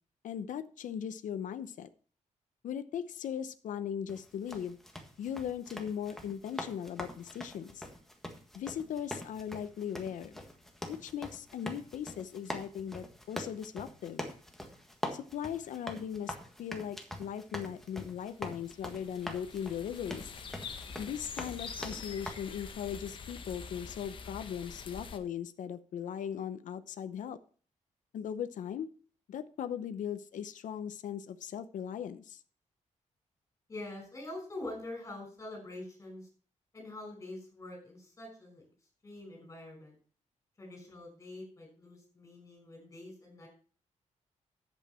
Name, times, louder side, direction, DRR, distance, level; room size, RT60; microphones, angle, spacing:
voice 1, 0.2-1.9 2.6-4.8 5.2-7.9 8.5-10.4 10.9-14.3 15.1-20.4 21.0-27.4 28.1-28.9 29.3-32.4, left 8 dB, 85° left, 11 dB, 0.8 m, -39 dB
sound 1, 4.1-22.3, left 1 dB, 5° left, 1.6 m, -44 dB
sound 2, 18.1-25.2, left 5 dB, 40° left, 1.1 m, -45 dB
voice 2, 33.7-36.3 36.7-38.7 39.0-40.0 40.6-43.5, left 2 dB, 20° left, 2 dB, 5.5 m, -45 dB
11.0 x 8.2 x 4.4 m, 0.42 s
wide cardioid pair, 175°, 13 cm